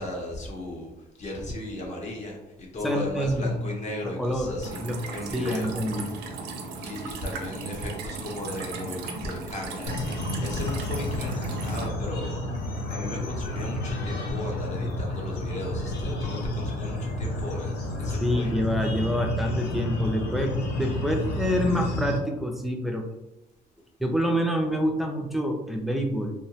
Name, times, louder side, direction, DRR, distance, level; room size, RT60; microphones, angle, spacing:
voice 1, 0.0-4.8 5.1-5.7 6.8-18.5, left 1 dB, 45° left, 0 dB, 0.8 m, -36 dB
voice 2, 2.8-3.6 4.0-4.5 4.8-5.0 5.3-6.1 18.2-23.1 24.0-26.3, equal, ahead, 2 dB, 0.3 m, -27 dB
sound 1, 4.6-11.9, right 4 dB, 90° right, 0.5 m, -37 dB
sound 2, 9.9-22.2, left 1 dB, 75° left, 0.5 m, -30 dB
2.7 x 2.1 x 2.7 m, 0.96 s
cardioid pair, 110°, 17 cm